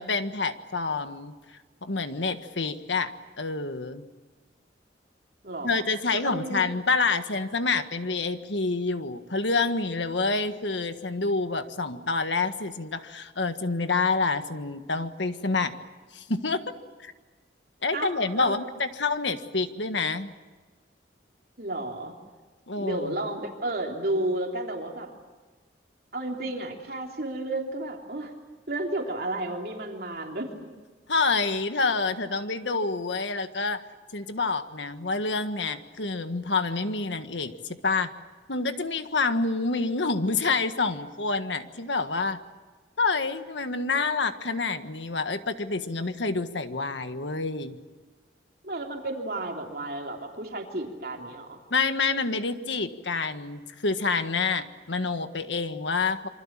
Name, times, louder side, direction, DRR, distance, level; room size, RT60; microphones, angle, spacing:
voice 1, 0.0-1.3 1.8-4.0 5.6-15.7 16.1-16.7 17.0-17.1 17.8-20.3 22.7-23.1 31.1-33.8 34.1-37.5 37.8-38.1 38.5-42.4 43.0-47.8 51.7-56.3, left 4 dB, 90° left, 9 dB, 1.6 m, -27 dB
voice 2, 5.4-5.9 6.1-6.7 17.9-18.7 21.6-22.1 22.8-25.1 26.1-28.3 28.7-30.5 48.6-51.6, right 2 dB, 55° right, 1 dB, 3.4 m, -32 dB
27.5 x 25.0 x 7.5 m, 1.4 s
head